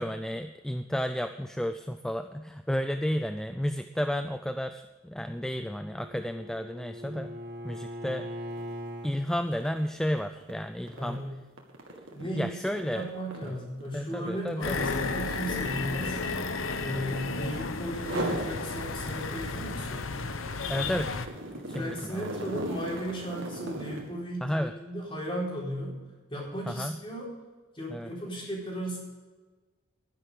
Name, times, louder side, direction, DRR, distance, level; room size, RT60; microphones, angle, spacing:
voice 1, 0.0-7.4 7.6-8.3 9.0-11.2 12.2-13.1 13.4-13.5 13.9-14.9 20.7-21.1 21.7-22.6 24.4-24.7 26.7-27.0 27.9-28.1, equal, 5° left, 8 dB, 0.3 m, -32 dB
Bowed string instrument, 5.4-9.1, equal, 55° right, 1.7 m, -41 dB
sound 1, 8.5-8.7 9.0-17.5 17.9-18.5 19.0-24.1, right 1 dB, 75° right, 2.0 m, -39 dB
voice 2, 10.9-11.3 12.1-16.2 16.8-20.1 21.7-25.9 26.3-27.3 27.7-29.0, equal, 25° left, -4 dB, 4.2 m, -36 dB
sound 2, 14.6-21.3, left 4 dB, 80° left, 0.9 m, -33 dB
11.5 x 10.5 x 5.0 m, 1.3 s
head